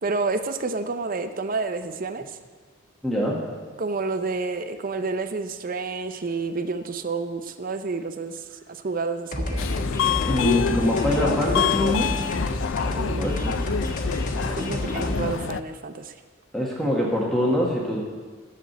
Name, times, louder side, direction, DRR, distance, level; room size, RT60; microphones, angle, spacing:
voice 1, 0.0-2.4 3.8-9.7 13.0-13.6 14.4-16.1, right 3 dB, 45° right, 9 dB, 0.6 m, -29 dB
voice 2, 3.0-3.4 10.3-12.1 13.2-13.5 16.5-18.1, left 1 dB, ahead, -4 dB, 1.6 m, -24 dB
sound 1, 9.3-15.3, left 1 dB, 40° left, 1.4 m, -29 dB
Subway metro underground, 9.6-15.6, left 8 dB, 70° left, 0.4 m, -27 dB
14.0 x 4.9 x 9.2 m, 1.5 s
head